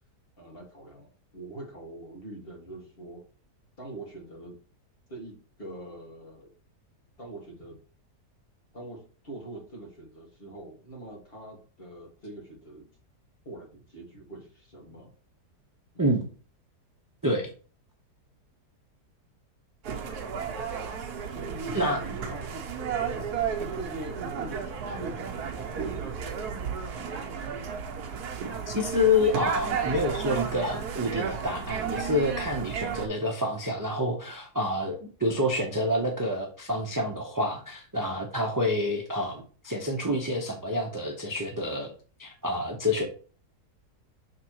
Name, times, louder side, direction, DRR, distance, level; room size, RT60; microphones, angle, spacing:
voice 1, 0.4-3.2 3.8-4.6 5.1-6.5 7.2-7.8 8.7-12.9 13.5-15.1 15.9-16.1 21.3-22.6 23.1-27.5, right 2 dB, 35° left, -1 dB, 2.1 m, -43 dB
sound 1, 19.8-33.1, right 6 dB, 70° right, 1.4 m, -33 dB
voice 2, 28.7-41.9 42.2-43.1, left 1 dB, 20° right, 1 dB, 0.5 m, -28 dB
6.6 x 3.6 x 4.6 m, 0.40 s
omnidirectional pair, 1.8 m